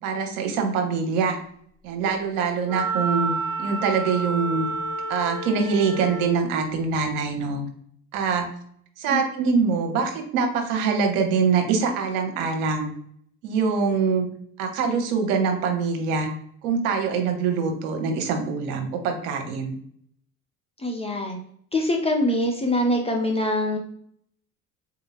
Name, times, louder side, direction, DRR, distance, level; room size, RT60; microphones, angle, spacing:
voice 1, 0.0-1.4 1.8-3.3 3.6-4.7 5.1-7.6 8.1-8.5 9.0-12.9 13.4-14.3 14.6-16.3 16.6-19.8, right 5 dB, 65° right, 4 dB, 1.0 m, -24 dB
Wind instrument woodwind instrument, 2.7-6.4, right 3 dB, 5° right, 1.4 m, -29 dB
voice 2, 20.8-21.4 21.7-23.8, left 1 dB, 15° left, 2 dB, 0.4 m, -24 dB
3.9 x 2.8 x 2.8 m, 0.64 s
hypercardioid pair, 70°, 48 cm